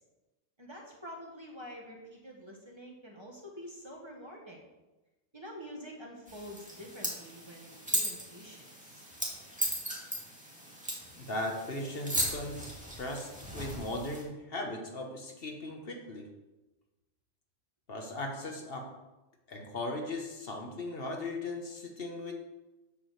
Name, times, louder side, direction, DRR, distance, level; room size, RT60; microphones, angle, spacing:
voice 1, 0.6-4.7 5.3-9.0, equal, 25° right, -1 dB, 1.7 m, -47 dB
sound 1, 6.3-14.2, right 1 dB, 5° right, 2.0 m, -37 dB
voice 2, 11.2-16.3 17.9-18.9 19.5-22.3, left 2 dB, 65° left, 2 dB, 1.5 m, -38 dB
7.5 x 6.3 x 6.4 m, 1.1 s
omnidirectional pair, 1.0 m